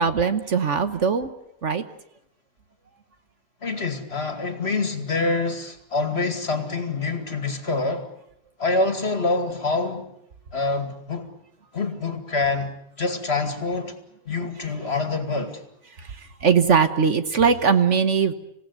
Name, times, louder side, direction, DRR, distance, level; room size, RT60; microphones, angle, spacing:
voice 1, 0.0-1.3 1.6-1.8 16.0-18.3, right 6 dB, 55° right, 1.4 m, -20 dB
voice 2, 3.6-8.1 8.6-10.1 10.5-11.3 11.7-13.9 14.3-15.6, left 3 dB, 45° left, 2.5 m, -26 dB
27.0 x 17.5 x 9.6 m
omnidirectional pair, 1.5 m